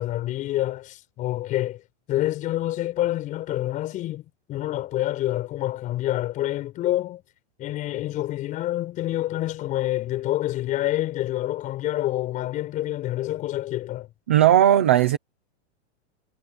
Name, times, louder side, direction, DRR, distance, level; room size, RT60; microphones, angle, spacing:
voice 1, 0.0-1.8 2.1-7.2 7.6-14.1, left 14 dB, 20° left, 5.0 m, -27 dB
voice 2, 14.3-15.2, right 11 dB, 15° right, 0.3 m, -17 dB
supercardioid pair, 175°, 34 cm